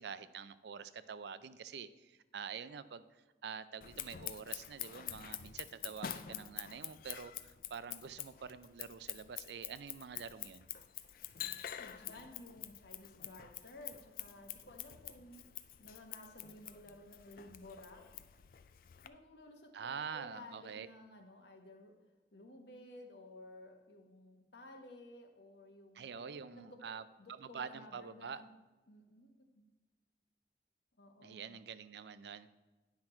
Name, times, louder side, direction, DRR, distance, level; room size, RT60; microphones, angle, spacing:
voice 1, 0.0-3.0 3.4-10.7 19.7-20.9 25.9-28.4 31.2-32.5, right 6 dB, 75° right, 14 dB, 0.4 m, -46 dB
Scissors, 3.8-19.1, left 11 dB, 50° left, 0.4 m, -47 dB
voice 2, 11.7-18.0 19.0-21.9 22.3-26.8 27.2-28.5 28.9-29.7 31.0-31.6, left 1 dB, 75° left, 4 dB, 1.2 m, -55 dB
9.6 x 5.9 x 4.4 m, 1.2 s
head